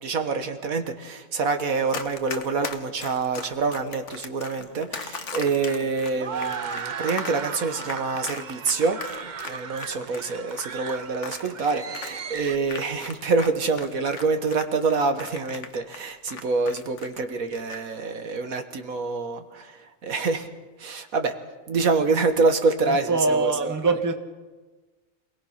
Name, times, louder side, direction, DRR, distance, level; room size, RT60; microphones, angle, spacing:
voice 1, 0.0-9.0 9.5-20.5 20.8-21.3 21.7-23.7, right 4 dB, 65° right, 7 dB, 1.7 m, -26 dB
Run, 1.9-13.5 13.8-17.2 17.5-17.8, left 5 dB, 55° left, 1.5 m, -37 dB
sound 1, 4.6-12.6, right 6 dB, 40° right, 0.7 m, -36 dB
voice 2, 22.8-24.1, right 3 dB, 15° right, 7 dB, 1.2 m, -23 dB
27.5 x 18.0 x 5.8 m, 1.3 s
omnidirectional pair, 1.6 m